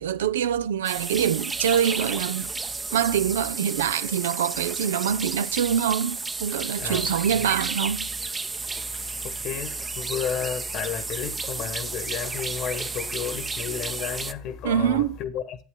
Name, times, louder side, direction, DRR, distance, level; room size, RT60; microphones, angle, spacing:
voice 1, 0.0-2.5 2.9-8.1 14.6-15.2, right 9 dB, 85° right, 0.4 m, -25 dB
sound 1, 0.8-14.3, right 4 dB, 25° right, 0.7 m, -32 dB
voice 2, 6.8-7.5 9.2-15.6, left 8 dB, 60° left, 1.3 m, -32 dB
11.0 x 8.4 x 3.7 m
hypercardioid pair, 75°, 0 cm